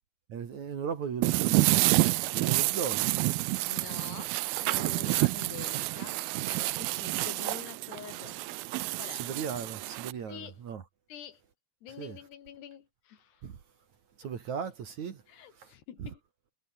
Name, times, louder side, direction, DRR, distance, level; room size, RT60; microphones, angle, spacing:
voice 1, 0.3-3.1 9.1-10.8 12.0-12.2 13.4-13.6 14.2-15.2 15.5-15.7 16.0-16.1, right 7 dB, 50° right, 3.0 m, -37 dB
sound 1, 1.2-10.1, right 22 dB, 85° right, 2.1 m, -29 dB
voice 2, 3.6-8.6 9.0-9.3 10.3-10.6 11.1-11.4 11.8-13.5 15.3-16.2, left 10 dB, 75° left, 4.3 m, -46 dB
omnidirectional pair, 4.9 m